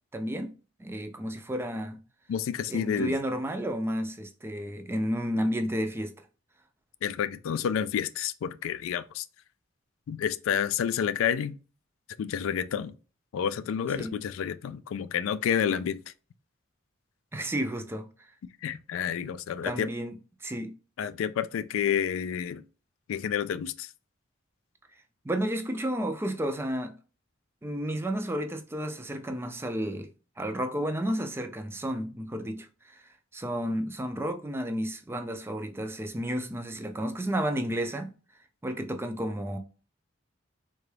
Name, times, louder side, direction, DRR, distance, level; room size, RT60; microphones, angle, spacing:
voice 1, 0.1-0.5 0.8-2.0 2.7-6.1 14.0-14.1 17.3-18.1 19.6-20.1 20.4-20.7 25.2-26.9 27.6-30.1 30.4-38.1 38.6-39.6, equal, 10° right, 0.3 m, -32 dB
voice 2, 2.3-3.1 7.0-9.3 10.1-11.6 12.2-12.9 13.3-16.0 18.6-19.9 21.0-22.6 23.1-23.9, left 8 dB, 85° left, 0.3 m, -29 dB
3.8 x 2.3 x 3.2 m
head